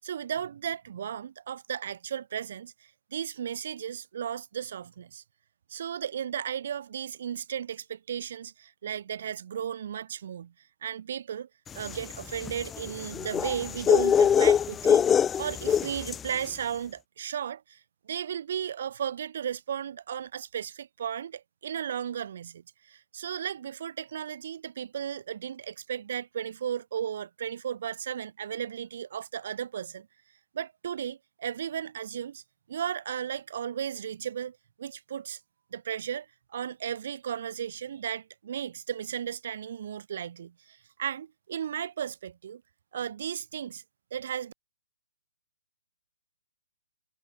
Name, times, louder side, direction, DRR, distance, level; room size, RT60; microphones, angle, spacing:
voice 1, 0.0-5.2 5.7-10.5 10.8-15.1 15.4-30.1 30.5-32.4 32.7-35.4 35.7-42.6 42.9-43.8 44.1-44.5, right 9 dB, 50° right, 7.5 m, -35 dB
sound 1, 11.8-16.3, left 8 dB, 10° left, 0.7 m, -24 dB
hypercardioid pair, 150°, 0 cm